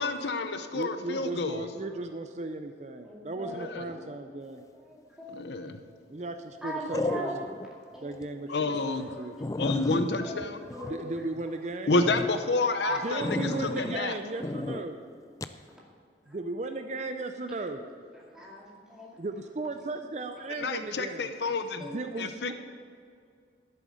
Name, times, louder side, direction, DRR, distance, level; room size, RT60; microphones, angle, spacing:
voice 1, 0.0-1.7 3.5-3.9 5.3-5.8 8.5-9.1 9.6-10.6 11.9-13.5 13.8-14.1 20.6-21.8 22.2-22.5, left 3 dB, 70° left, 9 dB, 0.7 m, -29 dB
voice 2, 0.7-4.6 6.1-7.4 8.0-9.3 10.8-12.0 13.0-15.0 16.3-17.8 19.2-21.3 21.8-22.5, right 2 dB, 40° right, 7 dB, 0.5 m, -36 dB
voice 3, 3.1-3.6 3.9-4.4 4.8-5.4 6.6-7.3 7.9-8.1 8.9-9.1 10.2-10.4 10.7-11.1 11.9-12.0 12.8-13.0 13.9-14.0 18.3-19.2 21.8-22.0, right 1 dB, 5° right, -5 dB, 2.2 m, -40 dB
sound 1, 5.3-5.7 6.9-7.7 8.1-8.2 8.7-8.8 9.1-9.2 9.4-11.4 11.9-12.3 13.2-14.0 14.4-14.8 15.4-15.6, left 2 dB, 20° left, 0.3 m, -33 dB
11.5 x 7.6 x 6.3 m, 2.3 s
head